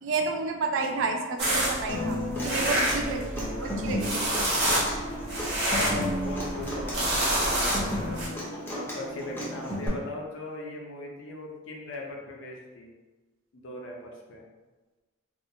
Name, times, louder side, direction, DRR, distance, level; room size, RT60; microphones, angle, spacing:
voice 1, 0.0-4.3, right 4 dB, 70° right, 4 dB, 0.3 m, -31 dB
sound 1, 1.4-8.3, right 1 dB, 55° right, 0.7 m, -28 dB
Human voice / Acoustic guitar, 1.9-9.9, equal, 10° left, 0.5 m, -34 dB
voice 2, 5.0-8.2 8.7-12.9 13.5-14.4, left 1 dB, 65° left, 0 dB, 0.5 m, -39 dB
2.4 x 2.2 x 2.7 m, 1.2 s
head